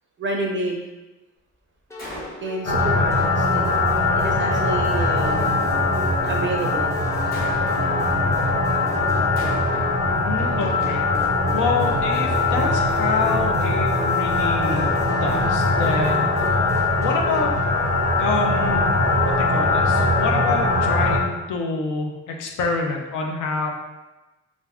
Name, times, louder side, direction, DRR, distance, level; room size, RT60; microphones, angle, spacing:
voice 1, 0.2-0.8 2.4-3.8 4.1-5.7 6.2-7.0 11.4-11.6, right 2 dB, 40° right, 1 dB, 0.4 m, -29 dB
sound 1, 1.9-17.8, left 2 dB, 10° left, 0.5 m, -38 dB
Gunshot gunfire, 2.0-2.7 7.3-8.0 9.4-10.0, equal, 30° left, 0.9 m, -36 dB
sound 2, 2.6-21.2, left 2 dB, 60° left, 1.0 m, -21 dB
voice 2, 10.2-11.1 11.5-16.4 17.0-17.5 18.2-19.0 19.2-23.7, left 4 dB, 80° left, 1 dB, 0.6 m, -27 dB
2.5 x 2.2 x 3.4 m, 1.1 s
cardioid pair, 90°, 30 cm